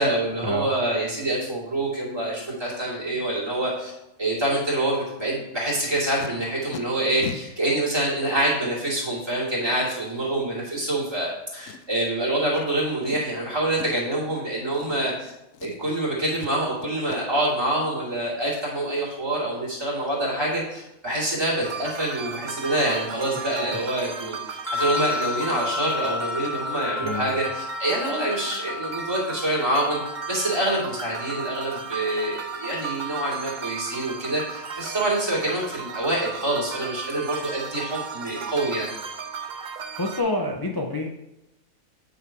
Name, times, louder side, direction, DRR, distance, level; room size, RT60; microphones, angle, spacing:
voice 1, 0.0-3.9 4.2-15.3 15.6-30.0 30.3-38.9, right 1 dB, 20° right, -7 dB, 2.5 m, -26 dB
Packing tape duct tape, 5.7-6.3 6.7-6.8 7.2-7.4 8.2-8.3 11.6-12.1 12.5-12.7 13.0-13.3 13.7-14.1 14.7-15.3 15.5-16.0 16.4-16.5 16.8-17.2 20.2-20.3 20.7-20.8 21.2-21.3 21.6-21.9 22.1-22.2, left 7 dB, 75° left, 0.9 m, -39 dB
sound 1, 21.6-40.2, right 6 dB, 50° right, 0.6 m, -35 dB
sound 2, 24.7-33.9, left 4 dB, 10° left, 1.3 m, -34 dB
voice 2, 27.0-27.4 40.0-41.1, left 1 dB, 30° left, 0 dB, 0.4 m, -27 dB
8.6 x 4.1 x 4.5 m, 0.91 s
omnidirectional pair, 1.4 m